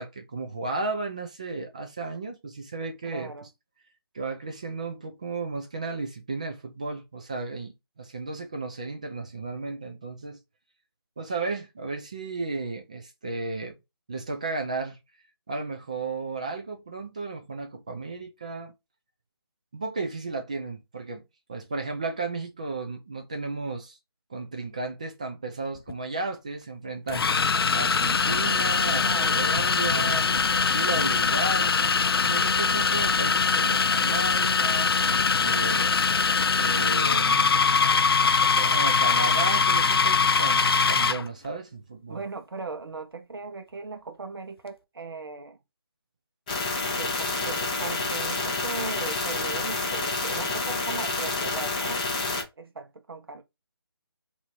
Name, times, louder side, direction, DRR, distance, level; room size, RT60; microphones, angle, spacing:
voice 1, 0.0-3.3 4.1-10.4 11.2-13.7 14.1-15.0 15.5-18.7 19.7-21.2 21.5-24.0 24.3-31.7 32.2-36.0 36.6-37.5 38.4-42.2, right 3 dB, 15° right, 0.3 m, -34 dB
voice 2, 3.1-3.5 29.0-29.5 42.1-45.6 47.0-52.2 52.6-53.4, right 4 dB, 65° right, 0.9 m, -38 dB
sound 1, 25.8-25.9 27.1-41.3, left 5 dB, 70° left, 0.4 m, -22 dB
sound 2, 46.5-52.4, left 3 dB, 20° left, 0.7 m, -29 dB
2.8 x 2.7 x 4.3 m
figure-of-eight pair, 160°, 13 cm